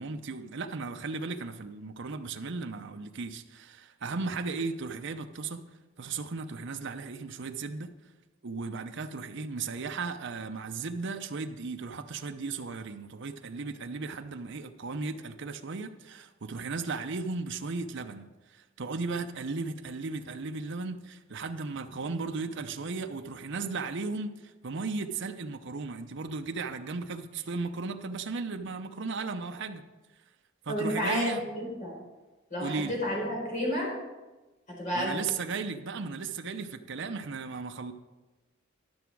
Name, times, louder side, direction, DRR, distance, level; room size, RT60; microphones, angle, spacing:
voice 1, 0.0-5.6 6.0-7.9 8.4-18.3 18.8-24.3 24.6-29.8 30.7-31.4 32.6-32.9 34.9-37.9, right 4 dB, 60° right, 0.7 m, -35 dB
voice 2, 30.7-31.9 32.5-33.9 34.8-35.2, equal, 40° left, 4.0 m, -31 dB
12.0 x 6.9 x 4.7 m
head